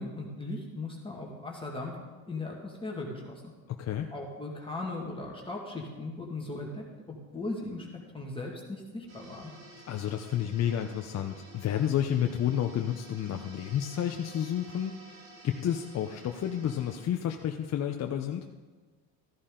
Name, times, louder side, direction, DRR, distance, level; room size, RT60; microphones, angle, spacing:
voice 1, 0.0-2.0 2.3-3.5 4.1-6.8 7.3-7.9 8.1-9.5, left 2 dB, 10° left, -2 dB, 2.1 m, -38 dB
voice 2, 3.7-4.1 9.9-14.9 15.4-18.5, left 10 dB, 40° left, 4 dB, 0.7 m, -30 dB
sound 1, 9.1-17.0, right 2 dB, 85° right, 3.5 m, -52 dB
14.0 x 11.0 x 3.8 m, 1.4 s
supercardioid pair, 100°, 42 cm